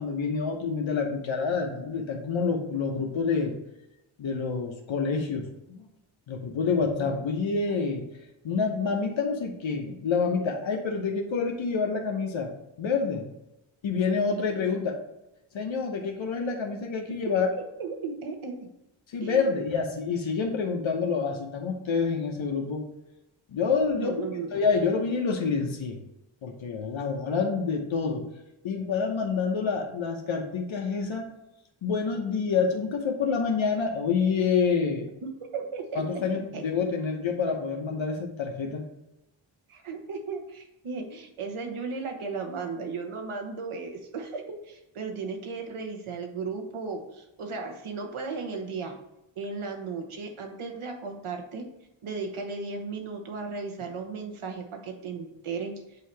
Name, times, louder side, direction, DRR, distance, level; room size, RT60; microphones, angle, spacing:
voice 1, 0.0-3.5 4.2-5.8 6.3-8.0 8.4-12.5 12.8-13.2 13.8-15.0 15.5-17.5 19.1-22.8 23.5-24.2 24.5-26.0 26.4-28.2 28.6-31.2 31.8-35.0 36.0-38.8, left 5 dB, 70° left, 1 dB, 0.9 m, -27 dB
voice 2, 17.8-18.6 19.2-19.7 24.0-24.5 35.2-36.0 36.5-36.6 39.7-49.0 49.4-51.6 52.0-55.7, right 4 dB, 75° right, 4 dB, 1.2 m, -35 dB
8.2 x 2.8 x 4.6 m, 0.89 s
wide cardioid pair, 145°, 49 cm